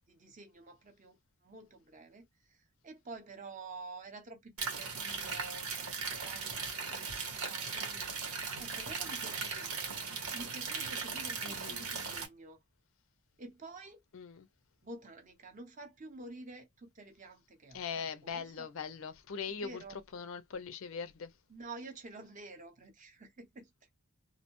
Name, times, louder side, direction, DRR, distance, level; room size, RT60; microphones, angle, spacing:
voice 1, 0.1-1.2 1.4-7.2 7.5-8.1 8.6-12.6 13.4-14.0 14.8-18.7 19.5-20.0 21.5-23.7, right 3 dB, 35° right, 0.6 m, -50 dB
sound 1, 4.6-12.3, right 5 dB, 85° right, 1.0 m, -38 dB
voice 2, 11.4-11.9 14.1-14.5 17.7-21.3, left 6 dB, 65° left, 0.4 m, -41 dB
2.6 x 2.0 x 2.9 m
head